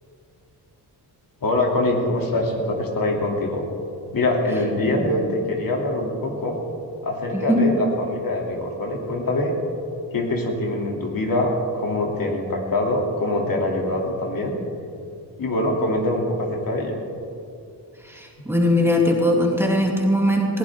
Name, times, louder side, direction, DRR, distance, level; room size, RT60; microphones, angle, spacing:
voice 1, 1.4-3.6 4.1-6.6 7.0-9.5 10.1-14.6 15.4-17.0, left 1 dB, 55° left, 0 dB, 2.9 m, -24 dB
voice 2, 18.0-20.6, left 1 dB, 5° right, -1 dB, 2.5 m, -20 dB
21.5 x 15.5 x 3.6 m, 2.5 s
cardioid pair, 95°, 40 cm